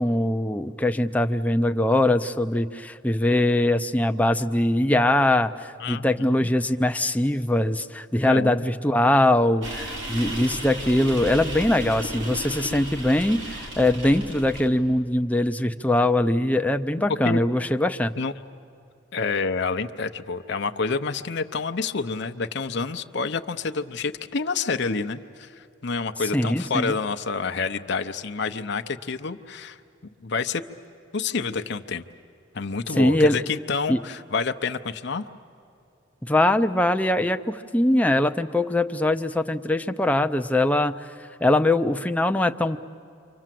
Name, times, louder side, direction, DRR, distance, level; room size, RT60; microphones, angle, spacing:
voice 1, 0.0-18.1 26.3-26.9 33.0-33.4 33.9-34.0 36.2-41.1 41.4-42.8, left 1 dB, 10° left, 7 dB, 0.6 m, -22 dB
voice 2, 5.8-6.5 8.2-8.7 17.1-17.4 18.2-18.3 19.1-29.8 30.2-30.6 31.1-32.0 32.5-35.3, left 4 dB, 60° left, 7 dB, 0.7 m, -28 dB
sound 1, 9.6-14.7, right 1 dB, 70° right, 3.3 m, -34 dB
29.5 x 25.5 x 7.6 m, 2.6 s
head